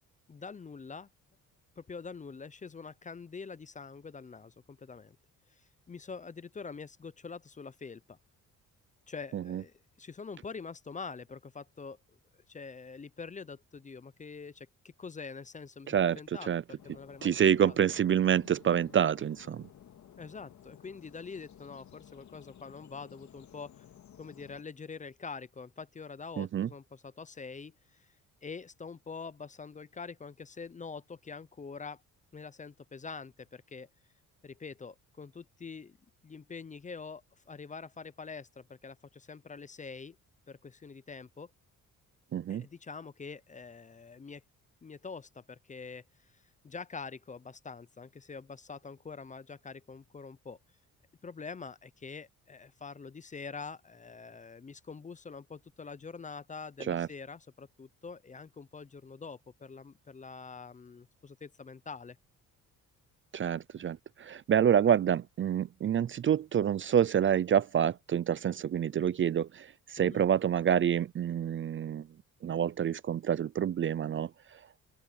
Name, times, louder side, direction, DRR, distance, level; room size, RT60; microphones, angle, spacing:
voice 1, 0.3-1.1 1.8-5.2 5.9-8.2 9.1-12.0 12.5-14.7 15.0-16.5 16.8-17.3 17.6-17.7 20.2-23.9 24.2-28.1 28.4-32.0 32.3-33.9 34.4-36.0 36.2-40.2 40.5-41.5 42.5-44.4 44.8-46.0 46.3-50.6 51.2-62.2 70.0-70.3, left 5 dB, 25° left, 0.6 m, -45 dB
voice 2, 15.9-16.6 17.2-19.7 26.4-26.7 42.3-42.7 56.8-57.1 63.3-72.1 72.4-74.6, right 9 dB, 40° right, 0.5 m, -28 dB
sound 1, 16.8-24.6, left 9 dB, 60° left, 2.0 m, -55 dB
open air
cardioid pair, 100°, 32 cm